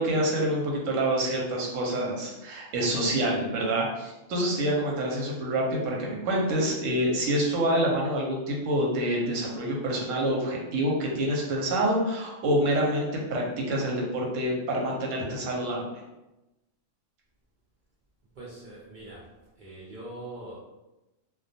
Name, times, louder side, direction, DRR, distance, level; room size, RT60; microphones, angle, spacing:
voice 1, 0.0-15.9, right 1 dB, 80° right, -2 dB, 1.0 m, -27 dB
voice 2, 18.4-19.3 19.6-20.6, right 2 dB, 60° right, -6 dB, 0.5 m, -42 dB
2.2 x 2.1 x 2.6 m, 0.99 s
omnidirectional pair, 1.3 m